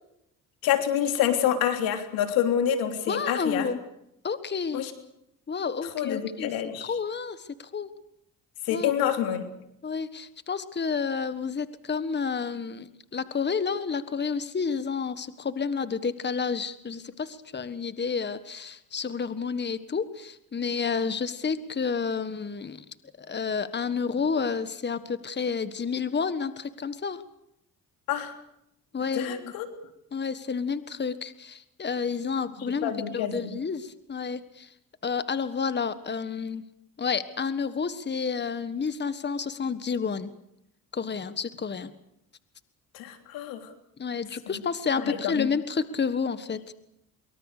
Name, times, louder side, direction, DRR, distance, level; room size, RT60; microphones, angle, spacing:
voice 1, 0.6-3.6 4.7-4.9 5.9-6.9 8.7-9.4 28.1-28.3 29.1-29.7 32.6-33.5 42.9-43.6 45.1-45.5, left 9 dB, 90° left, 6 dB, 3.3 m, -27 dB
voice 2, 3.1-3.8 4.2-4.9 5.5-7.9 8.7-8.9 9.8-22.8 23.2-27.2 28.9-29.4 30.1-34.7 35.0-36.6 37.0-40.3 40.9-41.9 44.0-46.7, left 5 dB, 30° left, 13 dB, 1.5 m, -30 dB
24.0 x 23.5 x 6.7 m, 0.80 s
cardioid pair, 75°, 34 cm